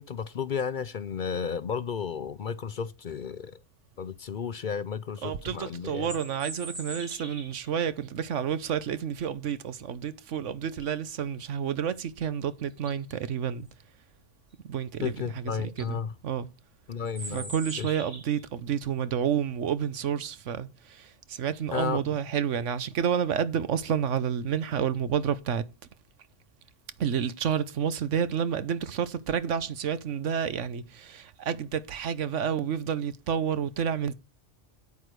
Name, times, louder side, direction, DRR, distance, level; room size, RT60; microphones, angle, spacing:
voice 1, 0.0-3.6 4.0-6.1 15.0-16.1 16.9-17.9 21.7-22.2, left 6 dB, 50° left, 0.7 m, -33 dB
voice 2, 5.2-13.7 14.6-16.5 17.3-25.6 27.0-34.1, right 8 dB, 85° right, 1.2 m, -30 dB
sound 1, 5.8-7.7 12.2-12.3 12.7-13.1 15.2-15.3 15.6-15.9 17.0-18.4, right 2 dB, 50° right, 4.6 m, -42 dB
9.4 x 8.4 x 4.7 m
omnidirectional pair, 1.2 m